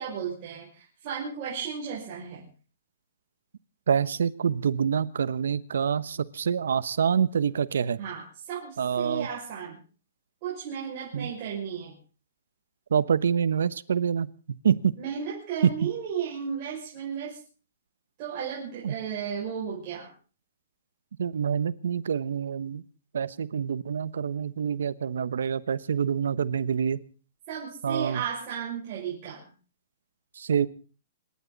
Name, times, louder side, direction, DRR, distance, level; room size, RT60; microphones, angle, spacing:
voice 1, 0.0-2.4 8.0-9.8 10.4-11.9 15.0-17.4 18.2-20.1 27.5-29.5, right 7 dB, 30° right, -5 dB, 6.3 m, -34 dB
voice 2, 3.9-8.0 8.8-9.3 11.1-11.3 12.9-14.3 14.6-14.9 18.8-18.9 21.2-22.8 23.1-27.0 27.8-28.2 30.4-30.7, right 7 dB, 90° right, 16 dB, 1.0 m, -26 dB
27.5 x 11.5 x 4.1 m, 0.37 s
hypercardioid pair, 165°, 0 cm